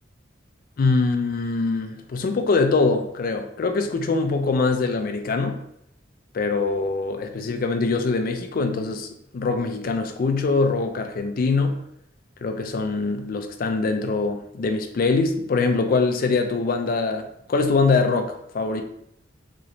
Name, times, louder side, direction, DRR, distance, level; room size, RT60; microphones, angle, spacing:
voice 1, 0.8-5.6 6.3-9.1 9.3-11.8 12.4-18.8, left 3 dB, 50° left, 6 dB, 0.3 m, -23 dB
3.0 x 2.9 x 2.6 m, 0.74 s
head